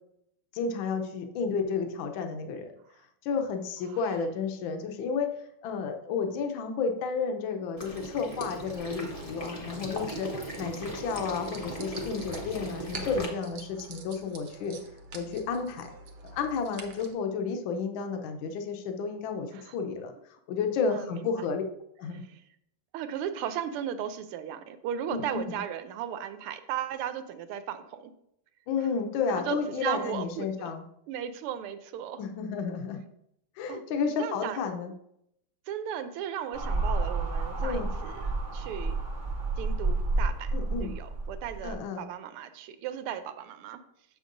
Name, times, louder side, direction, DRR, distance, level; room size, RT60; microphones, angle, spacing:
voice 1, 0.5-2.7 3.2-10.3 10.6-14.8 15.1-15.9 16.3-21.6 22.0-22.2 25.1-25.6 28.7-30.8 32.2-33.0 33.6-34.9 37.6-37.9 40.5-40.9 41.6-42.0, left 5 dB, 70° left, 5 dB, 1.4 m, -32 dB
Water / Liquid, 7.8-13.3, right 1 dB, 30° left, 0.7 m, -38 dB
sound 1, 8.4-17.1, right 4 dB, 60° right, 1.2 m, -48 dB
voice 2, 20.9-21.2 22.9-28.1 29.3-30.7 31.1-32.2 33.7-34.6 35.7-39.0 39.6-43.8, right 9 dB, 90° right, 10 dB, 1.5 m, -36 dB
sound 2, 36.5-41.7, right 3 dB, 45° right, 0.6 m, -30 dB
7.0 x 6.5 x 2.5 m, 0.76 s
omnidirectional pair, 2.4 m